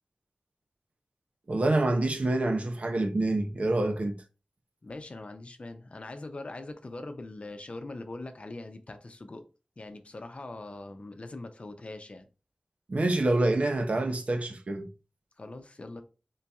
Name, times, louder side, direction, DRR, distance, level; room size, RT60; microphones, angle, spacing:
voice 1, 1.5-4.2 12.9-14.9, right 2 dB, 60° right, 0.8 m, -26 dB
voice 2, 4.8-9.5 9.8-12.3 15.4-16.0, left 2 dB, 55° left, 0.7 m, -42 dB
3.8 x 2.8 x 3.5 m
cardioid pair, 45°, 2 cm